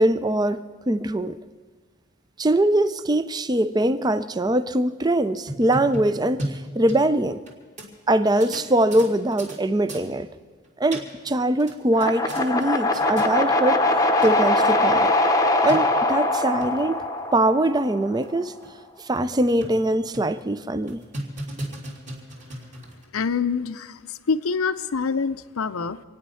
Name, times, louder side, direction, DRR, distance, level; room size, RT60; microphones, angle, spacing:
voice 1, 0.0-1.4 2.4-7.4 8.1-10.3 10.8-13.8 14.2-15.1 15.6-17.0 17.3-18.5 19.0-21.0, right 1 dB, 20° right, 0.4 m, -22 dB
sound 1, 5.5-7.5 7.8-7.9 8.4-9.6 9.9-10.1 10.6-11.3 11.6-12.7 12.9-13.3 13.9-14.0 14.2-14.3 14.7-14.8 15.0-15.1 15.7-15.8 16.4-16.7 17.2-17.3 17.7-17.8 18.2-18.3 18.6-18.7 19.2-19.8 20.1-20.4 20.9-23.0, right 1 dB, 35° right, 2.4 m, -35 dB
sound 2, 11.9-18.1, left 2 dB, 15° left, 0.8 m, -22 dB
voice 2, 23.1-26.0, left 5 dB, 80° left, 0.6 m, -26 dB
25.5 x 9.3 x 5.6 m
head